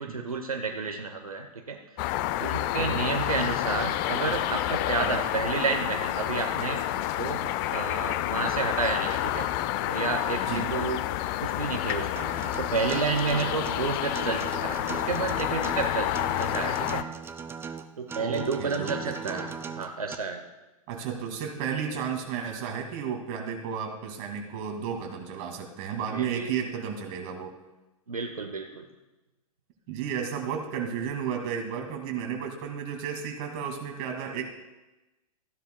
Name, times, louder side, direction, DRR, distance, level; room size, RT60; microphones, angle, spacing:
voice 1, 0.0-1.8 2.4-9.5 9.9-11.0 11.4-12.1 12.6-17.0 18.0-20.4 26.1-26.5 28.1-28.8, right 4 dB, 85° right, 4 dB, 1.0 m, -31 dB
sound 1, 2.0-17.0, left 13 dB, 40° left, 0.5 m, -29 dB
voice 2, 2.8-3.1 5.0-5.1 10.4-10.7 13.6-13.7 18.2-19.5 20.9-27.5 29.9-34.5, right 7 dB, 45° right, 3 dB, 2.3 m, -33 dB
Acoustic guitar, 12.2-20.1, right 6 dB, 15° right, 0.6 m, -38 dB
15.0 x 10.5 x 2.3 m, 1.1 s
figure-of-eight pair, 105°, 18 cm